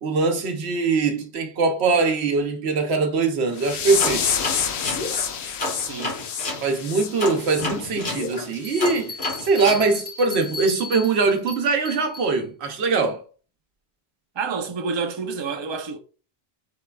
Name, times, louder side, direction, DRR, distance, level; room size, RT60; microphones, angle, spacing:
voice 1, 0.0-4.3 6.6-13.2, right 4 dB, 90° right, 1.0 m, -22 dB
sound 1, 3.6-8.3 8.7-8.9 9.3-9.5 9.9-10.1 10.6-10.7, left 7 dB, 85° left, 0.8 m, -28 dB
sound 2, 4.0-6.6 7.2-9.8, left 2 dB, 55° left, 1.4 m, -30 dB
voice 2, 5.8-6.2 14.3-16.0, right 5 dB, 35° right, 0.5 m, -29 dB
Bell, 8.6-12.3, left 3 dB, 15° left, 1.6 m, -36 dB
4.7 x 3.3 x 2.3 m
omnidirectional pair, 1.1 m